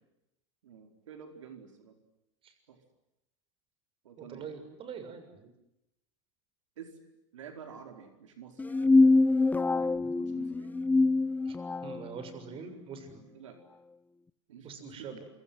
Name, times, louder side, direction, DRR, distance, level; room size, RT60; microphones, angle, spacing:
voice 1, 0.6-1.9 2.7-2.8 4.0-4.5 6.8-7.0 7.3-9.2 9.7-10.8 13.3-13.6 14.5-15.2, right 7 dB, 85° right, 5 dB, 4.8 m, -49 dB
voice 2, 4.2-5.5 11.4-11.6 11.8-13.2 14.6-15.3, right 6 dB, 35° right, 9 dB, 6.9 m, -44 dB
sound 1, 8.6-12.0, left 3 dB, 10° left, 1.0 m, -24 dB
28.5 x 26.5 x 7.9 m, 0.88 s
hypercardioid pair, 115°, 16 cm